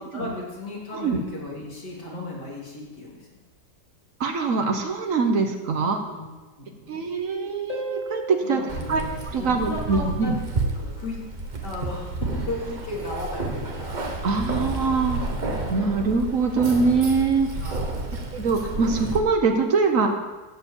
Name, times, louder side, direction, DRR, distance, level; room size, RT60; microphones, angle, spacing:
voice 1, 0.0-3.3 6.1-7.0 8.4-9.1 9.4-11.3 11.6-14.0 17.6-18.0, left 2 dB, 75° left, -4 dB, 3.3 m, -35 dB
voice 2, 4.2-6.0 6.9-8.6 8.9-9.0 9.3-10.3 14.2-15.2 15.7-17.5 18.1-20.1, right 4 dB, 55° right, 5 dB, 1.3 m, -23 dB
Harp, 7.7-10.2 13.7-13.8, right 2 dB, 20° left, 2.4 m, -36 dB
Keys jangling, 8.7-19.2, right 2 dB, 30° right, 1.0 m, -31 dB
12.5 x 4.8 x 8.3 m, 1.2 s
omnidirectional pair, 1.8 m